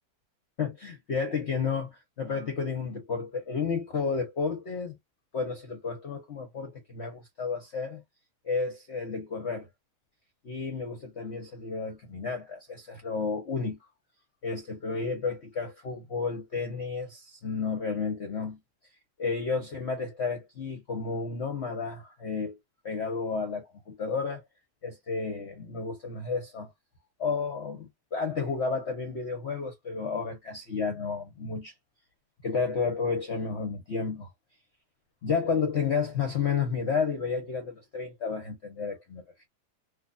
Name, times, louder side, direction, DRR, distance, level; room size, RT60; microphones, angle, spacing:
voice 1, 0.6-5.0 5.3-8.0 8.4-9.7 10.4-13.8 14.4-18.6 19.2-22.6 22.8-24.4 24.8-26.7 27.2-31.7 32.4-34.3 35.2-39.5, left 5 dB, 50° left, 1.0 m, -31 dB
4.0 x 2.7 x 2.3 m
omnidirectional pair, 1.7 m